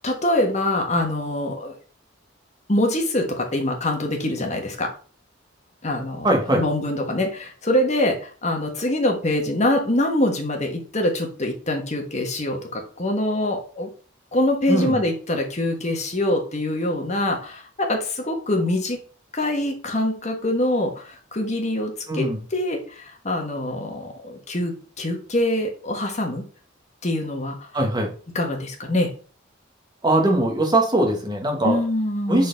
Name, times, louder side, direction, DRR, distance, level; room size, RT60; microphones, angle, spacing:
voice 1, 0.0-1.7 2.7-4.9 5.8-6.3 6.5-13.9 14.3-19.0 19.3-26.4 27.0-27.5 28.3-29.1 31.6-32.5, left 1 dB, 35° left, 3 dB, 1.4 m, -24 dB
voice 2, 6.2-6.6 14.7-15.0 22.1-22.4 27.7-28.1 30.0-31.8 32.3-32.5, right 1 dB, 20° right, 1 dB, 1.4 m, -21 dB
6.3 x 4.1 x 4.0 m, 0.39 s
head